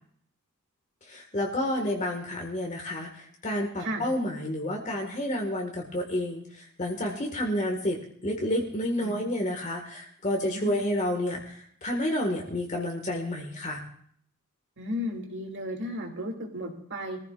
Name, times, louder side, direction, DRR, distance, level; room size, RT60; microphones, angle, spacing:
voice 1, 1.1-13.8, left 1 dB, 35° left, 0 dB, 1.9 m, -30 dB
voice 2, 14.8-17.2, left 1 dB, 55° right, 2 dB, 2.6 m, -34 dB
23.5 x 15.0 x 2.5 m, 0.64 s
head